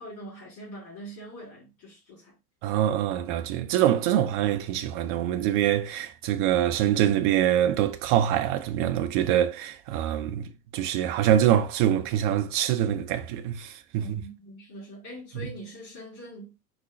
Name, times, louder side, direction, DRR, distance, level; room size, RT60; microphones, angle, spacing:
voice 1, 0.0-2.4 14.0-16.6, equal, 45° left, 2.8 m, -43 dB
voice 2, 2.6-14.2, right 11 dB, 35° right, 0.4 m, -24 dB
4.7 x 2.2 x 4.2 m
figure-of-eight pair, 75°, 46 cm